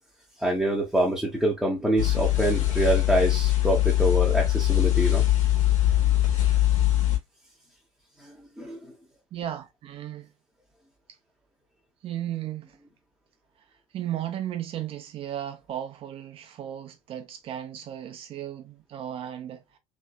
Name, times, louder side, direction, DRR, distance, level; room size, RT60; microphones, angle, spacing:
voice 1, 0.4-5.2 8.2-8.8, right 1 dB, ahead, 0.8 m, -25 dB
sound 1, 2.0-7.2, left 14 dB, 70° left, 1.1 m, -22 dB
voice 2, 9.3-10.3 12.0-12.8 13.9-19.8, right 11 dB, 35° right, 0.7 m, -35 dB
3.1 x 3.1 x 2.2 m
figure-of-eight pair, 70°, 17 cm